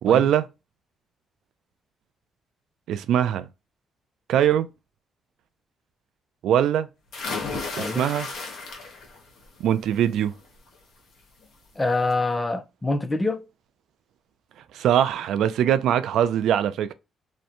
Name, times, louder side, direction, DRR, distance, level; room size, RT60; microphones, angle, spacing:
voice 1, 0.0-0.4 2.9-3.5 4.3-4.7 6.4-6.9 7.8-8.3 9.6-10.3 14.7-16.9, right 10 dB, 80° right, 0.3 m, -21 dB
sound 1, 7.1-9.2 9.6-10.0 11.4-11.5 11.9-12.0, left 4 dB, 65° left, 0.8 m, -33 dB
voice 2, 11.8-13.5, left 2 dB, 15° left, 0.4 m, -25 dB
2.5 x 2.1 x 2.6 m
cardioid pair, 90°, 0 cm